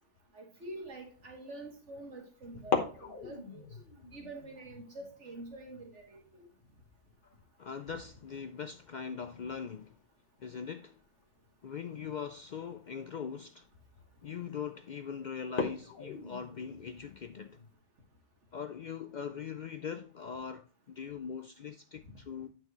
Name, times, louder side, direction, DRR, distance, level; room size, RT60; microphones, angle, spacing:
voice 1, 0.3-3.6 4.1-6.5, right 2 dB, 70° right, 2.2 m, -46 dB
sound 1, 1.1-1.4 2.5-9.0 9.3-9.4 9.8-10.1 11.1-11.3 11.9-12.0 12.6-12.7 13.0-13.3 14.0-14.3 14.7-14.8 15.4-17.7, left 5 dB, 45° left, 1.2 m, -40 dB
voice 2, 7.6-10.0 10.4-11.0 11.6-13.7 14.2-17.6 18.5-22.5, left 6 dB, 65° left, 0.4 m, -41 dB
8.9 x 6.0 x 3.0 m
omnidirectional pair, 1.3 m